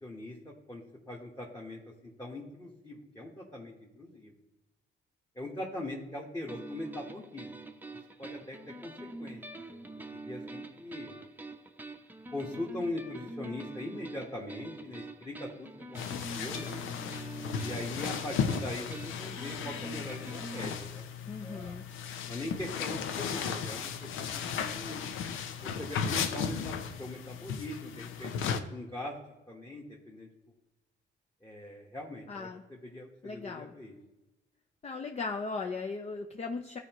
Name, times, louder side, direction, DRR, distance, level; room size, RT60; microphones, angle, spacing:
voice 1, 0.0-4.3 5.3-7.5 8.2-8.9 9.2-11.2 12.3-16.9 17.6-21.0 21.4-21.8 22.3-25.0 25.6-29.1 29.5-30.3 31.4-34.0, left 1 dB, 15° left, -2 dB, 1.4 m, -41 dB
sound 1, 6.5-20.7, right 2 dB, 10° right, 0.7 m, -45 dB
sound 2, 15.9-28.6, left 7 dB, 85° left, 0.7 m, -35 dB
voice 2, 21.3-21.8 32.3-32.6 33.2-33.7 34.8-36.8, left 4 dB, 35° left, 3 dB, 0.6 m, -37 dB
13.0 x 4.6 x 3.0 m, 1.0 s
cardioid pair, 90°, 20 cm